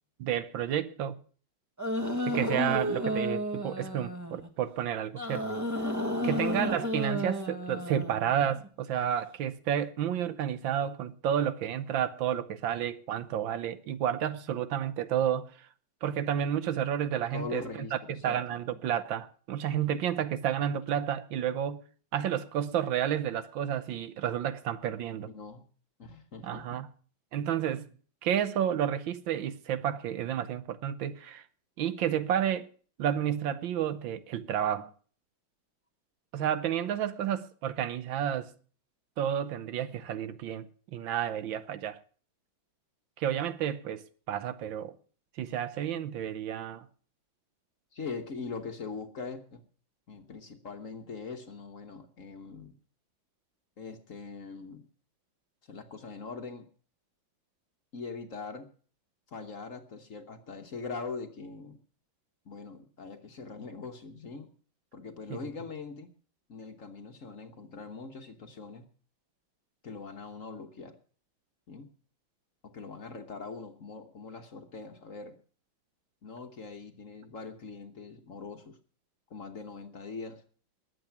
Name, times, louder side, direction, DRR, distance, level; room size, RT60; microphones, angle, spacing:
voice 1, 0.2-1.2 2.3-5.4 6.2-15.5 16.0-18.0 18.2-21.8 22.1-25.3 26.4-26.9 27.3-27.9 28.2-31.4 31.8-32.7 33.0-34.9 36.3-38.5 39.2-42.0 43.2-44.9 45.4-46.9 65.3-65.4, right 10 dB, 75° right, 1.6 m, -31 dB
sound 1, 1.8-4.5 5.2-8.7, equal, 10° right, 1.0 m, -32 dB
voice 2, 6.2-6.6 17.3-18.4 25.3-25.7 26.0-26.8 47.9-49.6 50.1-52.7 53.8-54.9 55.7-56.7 57.9-58.7 59.3-61.8 62.4-64.5 64.9-66.1 66.5-68.8 69.8-71.0 71.7-71.9 72.6-75.4 76.2-78.8 79.3-80.4, left 4 dB, 45° left, 1.4 m, -42 dB
20.5 x 7.9 x 5.8 m
omnidirectional pair, 2.2 m